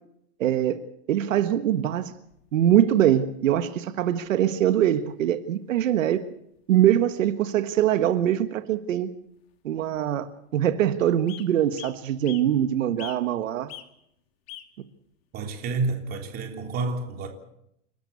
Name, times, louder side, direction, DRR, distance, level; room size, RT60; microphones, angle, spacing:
voice 1, 0.4-0.8 1.1-2.1 2.5-6.3 6.7-9.1 9.6-13.7, right 11 dB, 85° right, 1.6 m, -23 dB
sound 1, 1.8-2.8 3.9-4.0 4.2-4.3 5.0-5.3 5.6-5.7 6.0-6.2 6.6-6.8 7.7-7.8 8.2-8.3 9.4-9.5 9.7-10.2 10.7-10.8 11.3-11.5 11.8-12.5 13.0-13.4 13.7-13.9 14.5-14.7 15.4-15.5, left 12 dB, 50° left, 2.3 m, -43 dB
voice 2, 15.3-17.3, right 3 dB, 25° right, 3.5 m, -29 dB
29.0 x 13.5 x 8.4 m
supercardioid pair, 165°, 38 cm